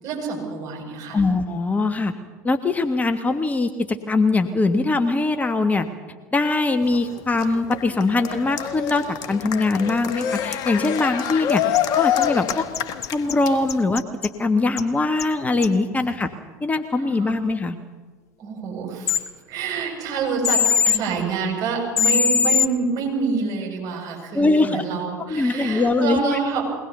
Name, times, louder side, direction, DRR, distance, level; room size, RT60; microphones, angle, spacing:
voice 1, 0.0-1.2 17.2-17.3 18.4-26.7, right 5 dB, 45° right, 0 dB, 7.7 m, -27 dB
voice 2, 1.1-2.2 2.4-5.9 6.3-11.7 12.0-12.7 13.1-16.3 16.6-17.8 24.3-24.8 25.3-26.4, left 3 dB, 15° left, 7 dB, 1.3 m, -22 dB
Cheering, 6.8-13.8, left 10 dB, 50° left, 1.3 m, -26 dB
sound 1, 11.7-11.8 12.2-13.3 13.7-14.3 14.8-14.9 15.2-15.3 15.6-15.7 19.1-19.2 20.4-21.0 22.0-22.7, left 7 dB, 70° left, 1.0 m, -20 dB
22.0 x 19.5 x 7.0 m, 1.4 s
figure-of-eight pair, 70°, 9 cm